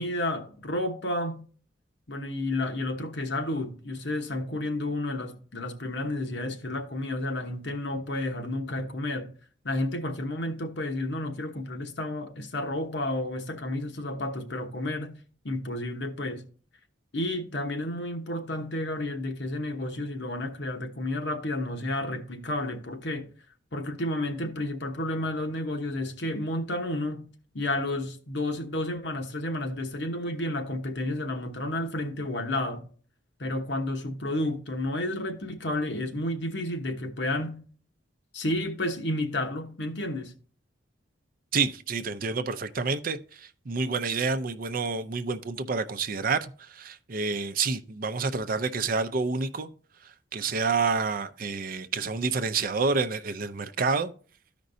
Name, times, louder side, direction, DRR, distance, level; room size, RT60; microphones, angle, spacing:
voice 1, 0.0-1.4 2.1-9.3 9.6-15.2 15.4-16.4 17.1-23.3 23.7-27.3 27.5-32.9 33.4-37.6 38.3-40.3, left 1 dB, 65° left, 1.1 m, -31 dB
voice 2, 41.5-49.7 50.0-54.1, right 4 dB, 50° right, 0.5 m, -28 dB
14.0 x 5.2 x 2.6 m
head